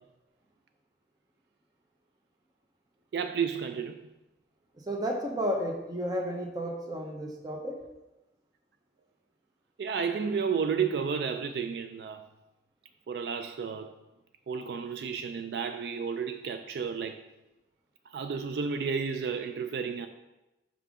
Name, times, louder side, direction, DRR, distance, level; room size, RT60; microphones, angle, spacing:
voice 1, 3.1-4.1 9.8-12.3 13.1-14.0 14.5-17.2 18.1-20.1, right 6 dB, 65° right, 0.3 m, -32 dB
voice 2, 4.8-7.8, equal, 20° right, 0.8 m, -32 dB
6.2 x 5.6 x 3.6 m
head